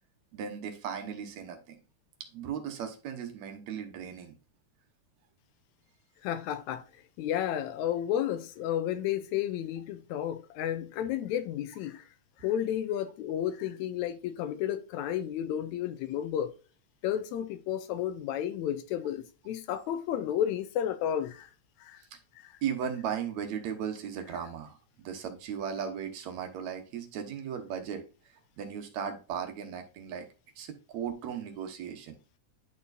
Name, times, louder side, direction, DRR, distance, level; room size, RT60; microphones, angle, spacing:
voice 1, 0.3-1.8 2.3-4.4 22.6-24.8 25.0-28.0 28.6-30.3 30.6-32.2, right 8 dB, 70° right, 2.2 m, -36 dB
voice 2, 6.2-12.1 12.4-16.5 17.0-21.5 21.8-22.0 22.4-22.6, left 10 dB, 80° left, 1.8 m, -32 dB
10.5 x 4.3 x 2.6 m
omnidirectional pair, 3.4 m